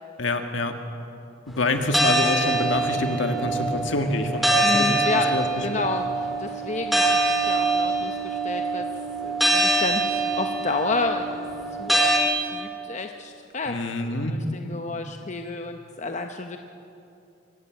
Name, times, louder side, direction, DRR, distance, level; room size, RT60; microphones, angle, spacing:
voice 1, 0.2-0.7 1.5-5.5 13.7-14.4, left 2 dB, 65° left, 5 dB, 1.9 m, -26 dB
sound 1, 1.9-12.2, right 2 dB, ahead, 2.3 m, -24 dB
voice 2, 4.6-7.2 7.5-8.9 9.2-11.5 11.8-12.1 12.5-13.8 14.0-16.6, left 3 dB, 35° left, 5 dB, 0.8 m, -30 dB
24.0 x 17.5 x 7.6 m, 2.7 s
head